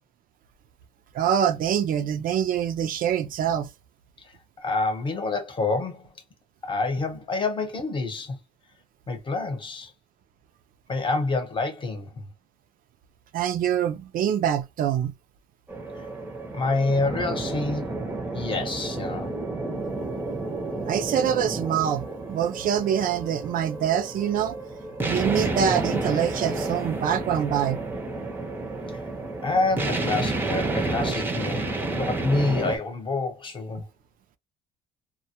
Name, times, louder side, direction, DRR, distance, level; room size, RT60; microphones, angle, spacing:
voice 1, 1.1-3.7 13.3-15.1 20.8-22.0 22.3-24.6 25.0-27.8, right 9 dB, 55° right, 0.4 m, -25 dB
voice 2, 4.6-6.1 6.6-8.4 9.1-9.9 10.9-12.3 16.5-19.3 28.9-29.0 29.4-33.9, left 3 dB, 30° left, 0.8 m, -27 dB
sound 1, 15.7-32.8, right 2 dB, 10° right, 0.6 m, -30 dB
2.1 x 2.1 x 2.8 m
cardioid pair, 110°, 17 cm